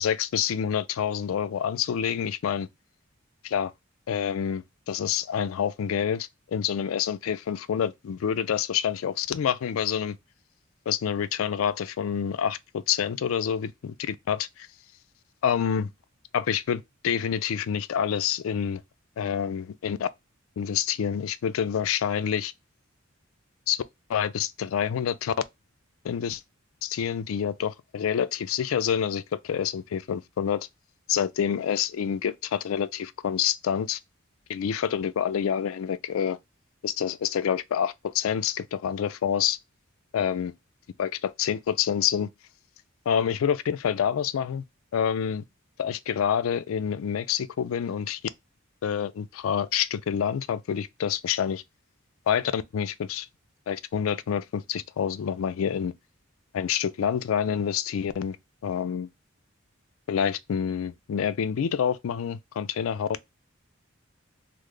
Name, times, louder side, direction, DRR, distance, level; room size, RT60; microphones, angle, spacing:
voice 1, 0.0-2.7 3.4-3.7 4.1-10.2 10.9-14.7 15.4-15.9 16.3-18.8 19.2-20.1 20.6-22.5 23.7-23.8 24.1-25.3 26.0-26.4 26.8-30.7 31.1-34.0 34.5-36.4 36.8-39.6 40.1-40.5 41.0-42.3 43.1-44.6 44.9-45.4 45.8-48.2 48.8-51.6 52.3-53.3 53.7-55.9 56.5-58.4 58.6-59.1 60.1-63.1, left 8 dB, 75° left, 0.3 m, -27 dB
3.2 x 2.0 x 3.6 m
head